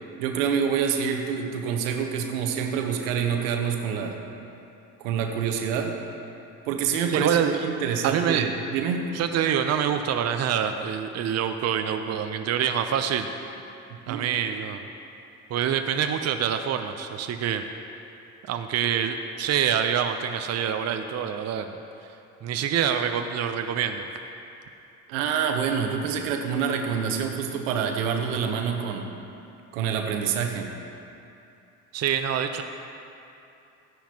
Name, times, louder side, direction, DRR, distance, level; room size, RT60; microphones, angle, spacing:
voice 1, 0.2-4.2 5.0-5.9 6.7-9.1 14.1-14.2 25.1-29.1 29.7-30.7, right 7 dB, 80° right, 3 dB, 1.0 m, -27 dB
voice 2, 7.1-7.6 8.0-8.4 9.1-13.5 14.1-14.8 15.5-17.6 18.4-21.8 22.0-22.1 22.4-24.1 31.9-32.6, right 8 dB, 40° right, 7 dB, 0.6 m, -26 dB
14.0 x 10.0 x 2.9 m, 2.7 s
hypercardioid pair, 60°, 39 cm